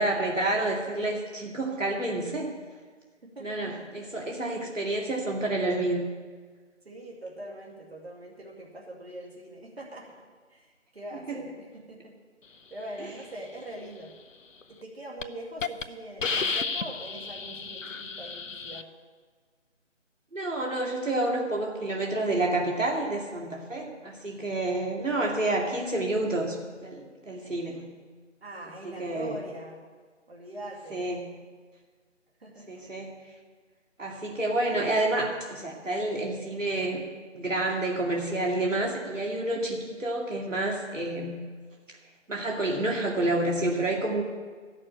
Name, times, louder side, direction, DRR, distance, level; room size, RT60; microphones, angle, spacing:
voice 1, 0.0-2.5 3.4-6.0 11.3-11.4 20.3-27.9 28.8-29.4 30.9-31.3 32.7-33.1 34.0-37.0 37.3-41.4 42.3-44.2, right 2 dB, 80° right, 0 dB, 2.3 m, -29 dB
voice 2, 3.2-4.1 4.5-4.6 6.8-10.0 10.5-10.7 10.9-12.1 12.7-14.1 14.7-18.8 28.4-29.8 30.3-31.0 32.4-32.7, right 1 dB, 55° right, -2 dB, 2.4 m, -42 dB
Hiss, 14.6-14.8 15.2-15.3 15.6-15.8 16.2-18.8, left 4 dB, 85° left, 0.7 m, -32 dB
13.0 x 6.5 x 8.9 m, 1.5 s
figure-of-eight pair, 165°, 37 cm